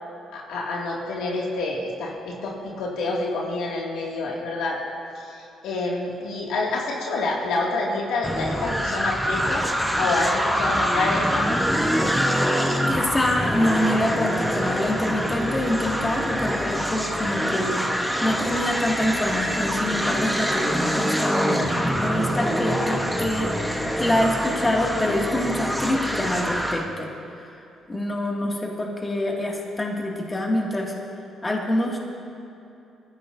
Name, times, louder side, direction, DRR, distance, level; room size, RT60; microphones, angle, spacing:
voice 1, 0.3-4.8 5.2-9.7 9.9-11.5, left 3 dB, 85° left, -3 dB, 2.3 m, -27 dB
sound 1, 8.2-26.9, equal, ahead, 1.1 m, -25 dB
voice 2, 12.9-17.8 18.2-23.5 24.0-27.1 27.4-27.6 27.9-30.9 31.4-32.0, left 1 dB, 20° left, -2 dB, 2.2 m, -26 dB
21.5 x 14.5 x 2.7 m, 2.7 s
cardioid pair, 90°, 0 cm